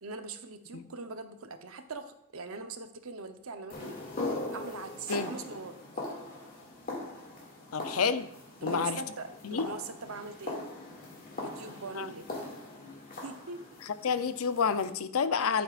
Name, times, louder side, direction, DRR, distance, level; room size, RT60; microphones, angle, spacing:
voice 1, 0.0-4.0 4.5-6.0 8.6-10.6 11.4-12.3 13.2-13.6 15.4-15.5, right 3 dB, 80° right, 8 dB, 0.8 m, -42 dB
sound 1, 3.7-14.9, left 2 dB, 40° left, 2.3 m, -40 dB
voice 2, 7.7-8.3 8.6-9.0 9.4-9.7 12.0-12.1 13.9-15.6, left 6 dB, 85° left, 12 dB, 0.6 m, -29 dB
11.5 x 8.7 x 2.5 m, 0.75 s
head